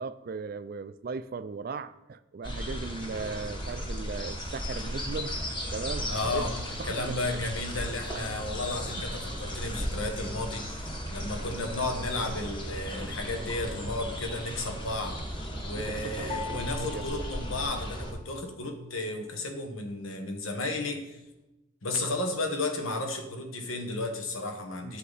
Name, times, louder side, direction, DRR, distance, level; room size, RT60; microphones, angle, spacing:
voice 1, 0.0-5.4 5.7-6.5 6.8-7.4 8.1-8.3 15.7-17.1 24.8-25.0, right 4 dB, 45° right, 14 dB, 0.3 m, -37 dB
sound 1, 2.4-18.1, equal, 25° left, 1.2 m, -36 dB
voice 2, 6.1-6.5 6.8-15.2 15.6-21.2 21.8-25.0, left 2 dB, 85° left, 5 dB, 1.3 m, -33 dB
sound 2, 16.3-18.4, left 8 dB, 40° left, 1.7 m, -42 dB
8.3 x 7.9 x 4.1 m, 0.99 s
head